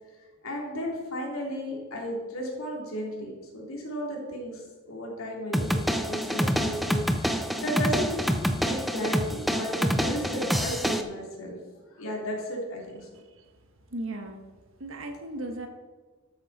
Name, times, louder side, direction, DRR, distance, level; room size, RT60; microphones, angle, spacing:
voice 1, 0.4-8.1 8.5-11.6 12.0-13.1, equal, 70° left, -2 dB, 3.3 m, -34 dB
sound 1, 5.5-11.0, equal, ahead, 0.7 m, -27 dB
voice 2, 13.9-14.4 14.8-15.7, right 1 dB, 65° right, 5 dB, 1.5 m, -36 dB
13.0 x 9.0 x 4.3 m, 1.4 s
head